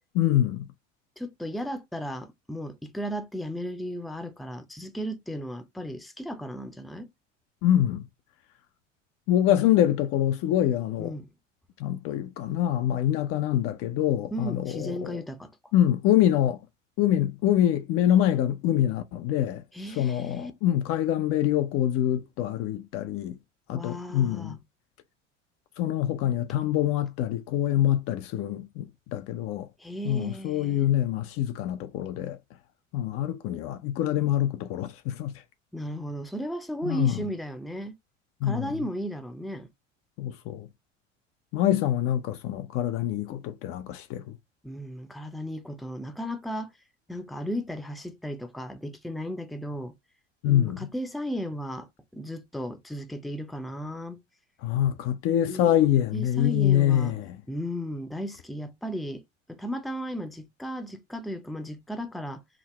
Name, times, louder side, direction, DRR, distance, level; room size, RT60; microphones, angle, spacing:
voice 1, 0.1-0.7 7.6-8.1 9.3-11.1 11.8-15.2 15.7-16.6 17.0-19.6 20.0-23.4 23.7-24.6 25.8-29.7 30.0-32.4 32.9-35.4 36.8-37.2 38.4-38.7 40.2-40.7 41.5-44.4 50.4-50.9 54.6-57.4, left 11 dB, 40° left, 0.5 m, -25 dB
voice 2, 1.2-7.1 11.0-11.3 14.3-15.5 19.7-20.5 23.7-24.6 29.8-30.8 35.7-38.0 38.4-39.7 44.6-46.7 47.1-49.9 50.4-51.9 52.1-54.2 55.4-55.8 56.1-57.1 57.5-59.2 59.5-62.4, equal, ahead, 0.6 m, -35 dB
5.0 x 2.6 x 3.2 m
figure-of-eight pair, 70°, 37 cm